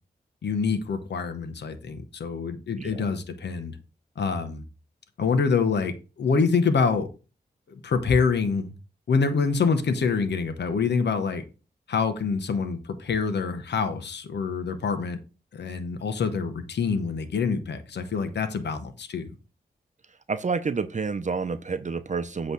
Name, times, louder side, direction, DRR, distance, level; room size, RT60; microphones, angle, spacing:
voice 1, 0.4-3.8 4.2-4.6 5.2-7.1 7.8-8.7 9.1-11.4 11.9-15.2 15.5-19.4, left 5 dB, 85° left, 9 dB, 1.0 m, -26 dB
voice 2, 20.3-22.5, right 5 dB, 45° right, 11 dB, 0.7 m, -29 dB
8.1 x 3.1 x 6.1 m, 0.32 s
cardioid pair, 50°, 17 cm